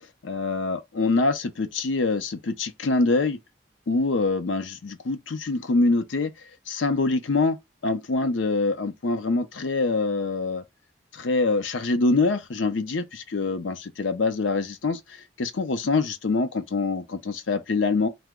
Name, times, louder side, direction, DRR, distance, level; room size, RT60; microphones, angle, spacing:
voice 1, 0.2-3.4 3.9-6.3 6.7-7.6 7.8-10.6 11.1-15.0 15.4-18.1, left 3 dB, 80° left, 0.6 m, -25 dB
2.9 x 2.1 x 3.5 m
head